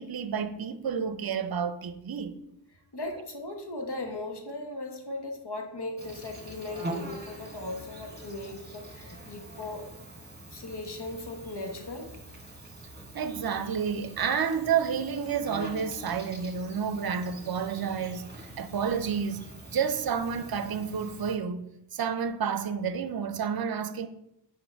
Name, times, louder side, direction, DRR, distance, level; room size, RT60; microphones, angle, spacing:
voice 1, 0.0-2.4 13.1-21.6 21.9-24.1, right 7 dB, 55° right, 0.5 m, -30 dB
voice 2, 2.9-9.9 10.5-12.1, left 2 dB, 65° left, 1.2 m, -38 dB
Insect, 6.0-21.4, right 1 dB, 25° right, 1.4 m, -44 dB
5.0 x 4.3 x 4.5 m
wide cardioid pair, 55°, 43 cm